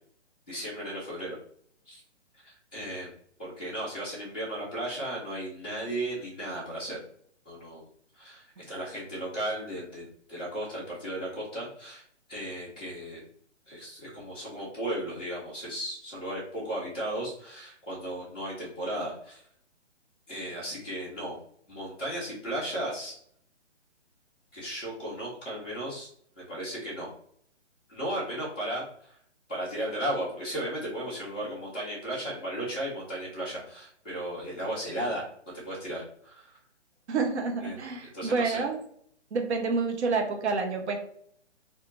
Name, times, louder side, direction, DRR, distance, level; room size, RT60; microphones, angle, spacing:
voice 1, 0.5-1.4 1.9-2.0 2.4-3.1 3.4-7.0 7.4-7.8 8.1-12.0 12.3-13.2 13.7-19.4 20.3-21.4 21.7-23.1 24.5-26.1 26.4-27.1 27.9-29.2 29.5-35.3 35.6-36.6 37.6-38.6, right 1 dB, 10° left, -15 dB, 0.4 m, -35 dB
voice 2, 37.1-38.8 39.3-41.0, right 4 dB, 65° right, 4 dB, 0.7 m, -28 dB
2.4 x 2.4 x 2.8 m, 0.64 s
hypercardioid pair, 160°, 36 cm